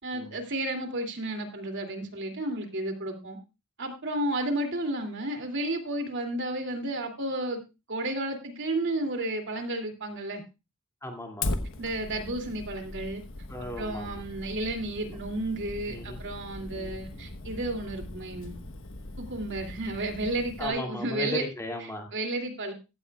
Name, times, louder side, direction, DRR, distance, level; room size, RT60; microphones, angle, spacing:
voice 1, 0.0-3.4 3.8-7.6 7.9-10.4 11.8-13.2 13.8-18.6 19.2-21.4 22.1-22.7, right 1 dB, 55° right, 4 dB, 2.7 m, -32 dB
voice 2, 11.0-11.5 13.5-14.2 15.9-16.2 16.7-17.0 20.6-22.1, left 1 dB, 15° left, 2 dB, 2.5 m, -36 dB
Fire, 11.4-20.7, left 2 dB, 65° left, 1.2 m, -39 dB
15.5 x 14.5 x 2.4 m, 0.28 s
head